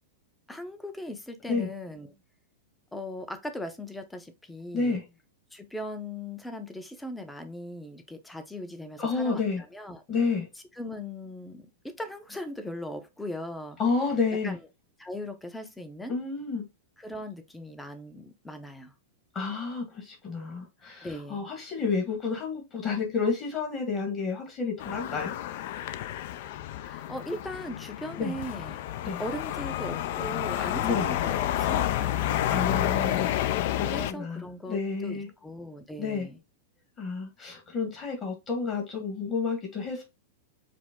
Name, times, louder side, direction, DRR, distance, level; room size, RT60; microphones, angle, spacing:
voice 1, 0.5-2.1 2.9-5.0 5.5-10.0 10.8-13.8 14.4-14.6 15.0-16.1 17.0-18.9 21.0-21.5 26.8-28.8 29.2-32.6 33.7-36.4, left 1 dB, 5° left, 0.6 m, -39 dB
voice 2, 9.0-9.6 10.1-10.5 13.8-14.5 16.1-16.6 19.3-25.3 28.2-28.3 29.0-29.2 30.8-31.1 32.5-35.3 36.0-36.3 37.0-40.0, left 4 dB, 30° left, 1.2 m, -30 dB
sound 1, 24.8-34.1, left 13 dB, 60° left, 0.4 m, -30 dB
5.0 x 2.0 x 3.5 m
supercardioid pair, 140°, 0 cm